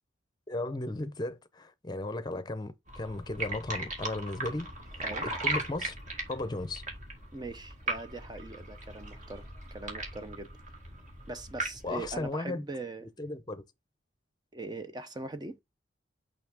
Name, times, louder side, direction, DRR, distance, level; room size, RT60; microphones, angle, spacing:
voice 1, 0.5-4.7 5.2-5.9 6.3-6.8 11.8-12.6 13.2-13.6, left 2 dB, 20° left, 0.7 m, -35 dB
sound 1, 2.9-12.3, right 2 dB, 40° right, 2.1 m, -38 dB
voice 2, 7.3-10.5 11.3-13.1 14.5-15.6, right 2 dB, 20° right, 0.5 m, -41 dB
6.1 x 5.4 x 3.5 m
head